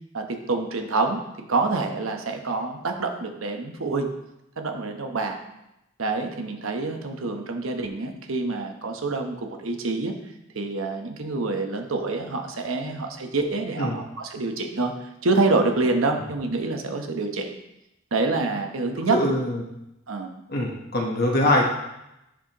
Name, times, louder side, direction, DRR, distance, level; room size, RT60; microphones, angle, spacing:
voice 1, 0.1-1.2 1.5-4.1 4.6-5.4 6.0-10.1 10.5-14.9 15.2-17.5 18.1-19.2 20.1-20.3, right 3 dB, 85° right, 4 dB, 1.0 m, -26 dB
voice 2, 19.1-19.6 20.5-21.6, left 1 dB, 50° left, -1 dB, 1.1 m, -23 dB
10.0 x 5.2 x 3.0 m, 0.89 s
head